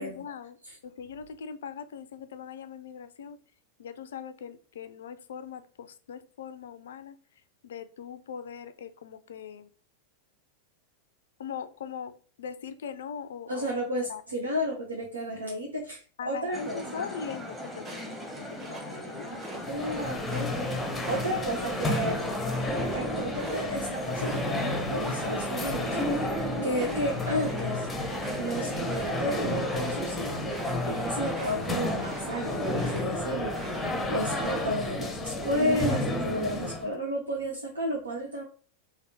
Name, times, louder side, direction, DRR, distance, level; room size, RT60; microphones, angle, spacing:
voice 1, 0.0-0.6 0.8-3.4 3.8-7.2 7.6-9.7 11.4-13.7 14.1-14.2 16.2-19.7, left 7 dB, 60° left, 0.4 m, -41 dB
voice 2, 13.5-17.0 19.7-20.5 21.1-22.2 22.9-26.0 26.6-27.9 28.3-38.4, equal, 75° right, 0.8 m, -32 dB
sound 1, 16.5-32.7, left 1 dB, 5° right, 1.0 m, -40 dB
sound 2, 17.8-19.7 20.1-25.4 25.7-26.2 26.5-33.2 33.5-35.0, right 2 dB, 25° right, 1.2 m, -46 dB
sound 3, 19.6-36.9, left 1 dB, 10° left, 0.6 m, -31 dB
3.3 x 2.5 x 4.0 m
figure-of-eight pair, 90°, 0 cm